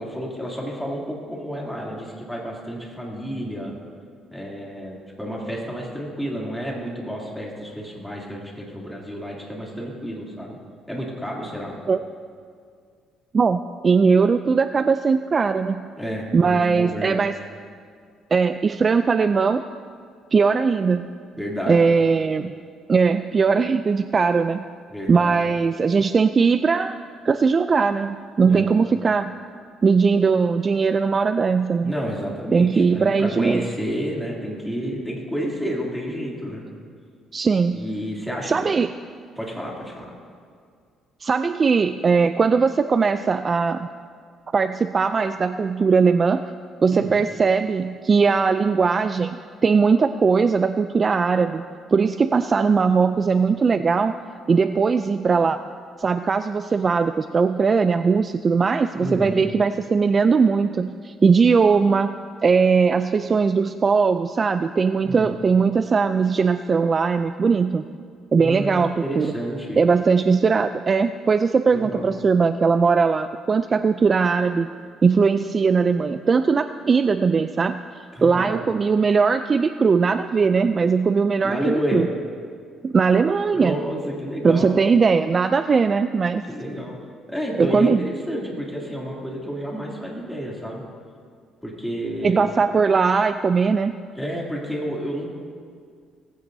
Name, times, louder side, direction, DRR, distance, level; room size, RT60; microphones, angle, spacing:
voice 1, 0.0-3.7 4.3-10.6 10.9-11.8 16.0-17.2 21.4-21.9 24.9-25.4 28.4-28.7 31.8-36.6 37.7-38.7 39.4-40.1 46.9-47.1 59.0-59.4 65.0-65.4 68.4-69.8 71.7-72.1 78.1-78.5 81.4-82.1 83.5-84.8 86.5-87.0 87.3-90.8 91.6-92.5 94.2-95.3, equal, 5° left, -3 dB, 2.8 m, -30 dB
voice 2, 13.3-15.9 16.3-17.3 18.3-19.6 20.3-21.1 21.7-22.5 22.9-24.6 25.1-27.0 27.2-29.3 29.8-31.9 32.5-33.7 37.3-37.8 38.5-38.9 41.2-43.9 44.5-46.4 46.8-49.4 49.6-51.6 51.9-54.2 54.5-55.6 56.0-62.1 62.4-67.8 68.3-69.3 69.8-74.7 75.0-77.8 78.2-82.1 82.8-83.7 84.4-86.4 87.6-88.0 92.2-93.9, right 5 dB, 30° right, 10 dB, 0.3 m, -19 dB
19.0 x 15.5 x 2.7 m, 2.1 s
cardioid pair, 120°, 0 cm